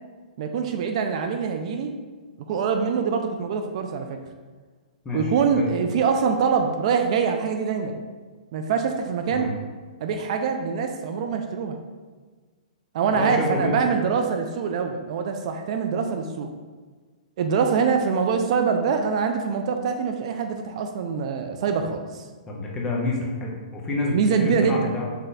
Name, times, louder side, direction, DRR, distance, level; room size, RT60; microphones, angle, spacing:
voice 1, 0.4-1.9 2.5-4.2 5.1-8.0 8.5-9.5 10.0-11.8 12.9-16.5 17.4-22.3 24.1-24.9, right 6 dB, 50° right, 5 dB, 0.4 m, -24 dB
voice 2, 5.0-5.7 9.3-9.5 13.1-13.8 22.5-25.1, left 2 dB, 15° left, -2 dB, 0.8 m, -28 dB
5.3 x 2.4 x 4.1 m, 1.4 s
hypercardioid pair, 150°, 5 cm